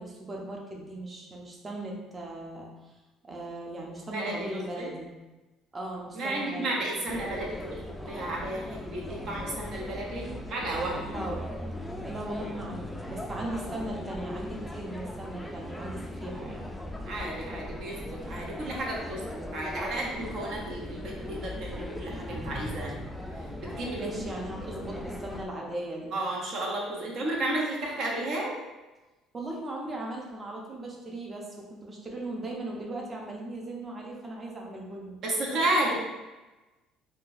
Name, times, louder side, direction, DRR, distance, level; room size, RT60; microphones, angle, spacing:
voice 1, 0.0-2.7 3.2-5.1 5.7-6.8 11.0-11.5 12.0-16.7 24.0-26.1 29.3-35.2, right 1 dB, 25° right, -1 dB, 0.7 m, -38 dB
voice 2, 4.1-4.5 4.8-4.9 6.1-7.8 8.1-11.0 17.0-23.1 23.6-24.1 26.1-28.5 35.2-35.9, right 1 dB, 60° right, -2 dB, 0.8 m, -32 dB
sound 1, 7.1-25.5, left 1 dB, 5° left, 0.3 m, -38 dB
3.7 x 2.3 x 2.6 m, 1.1 s
cardioid pair, 115°, 0 cm